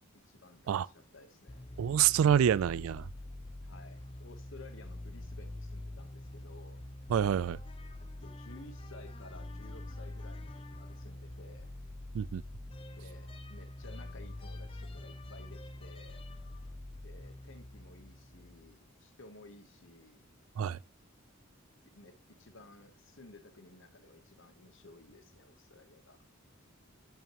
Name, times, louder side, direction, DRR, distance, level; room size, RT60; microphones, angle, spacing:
voice 1, 0.2-1.6 3.6-6.8 8.2-11.7 12.9-16.3 17.0-20.2 21.9-26.2, left 2 dB, 65° left, 1.1 m, -55 dB
sound 1, 1.5-18.8, left 1 dB, 25° left, 0.6 m, -45 dB
voice 2, 1.8-3.1 7.1-7.6 12.1-12.4 20.6-20.8, right 9 dB, 80° right, 0.3 m, -27 dB
9.0 x 5.8 x 3.0 m
head